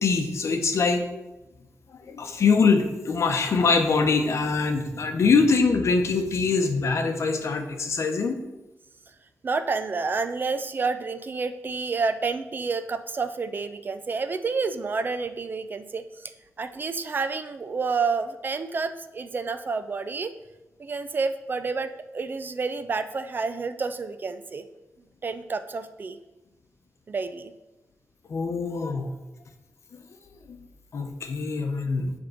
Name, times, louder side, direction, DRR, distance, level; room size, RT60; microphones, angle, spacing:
voice 1, 0.0-1.0 2.1-8.4 28.3-29.1 30.5-30.6 30.9-32.1, left 4 dB, 60° left, 6 dB, 0.8 m, -23 dB
voice 2, 9.4-16.3 16.6-20.3 20.8-24.7 25.2-26.2 27.1-27.5, right 4 dB, 35° right, 11 dB, 0.4 m, -29 dB
7.5 x 3.6 x 6.2 m, 1.0 s
wide cardioid pair, 165°, 6 cm